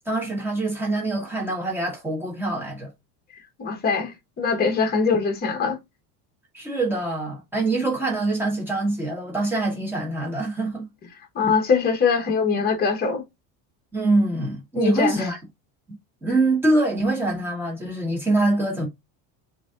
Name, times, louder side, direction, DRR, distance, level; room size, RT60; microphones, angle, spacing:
voice 1, 0.1-2.9 6.5-10.9 13.9-15.4 16.2-18.9, right 2 dB, 5° right, 1.3 m, -24 dB
voice 2, 3.6-5.8 11.3-13.2 14.7-15.3, left 5 dB, 20° left, 1.0 m, -22 dB
6.9 x 2.9 x 2.4 m
cardioid pair, 180°, 47 cm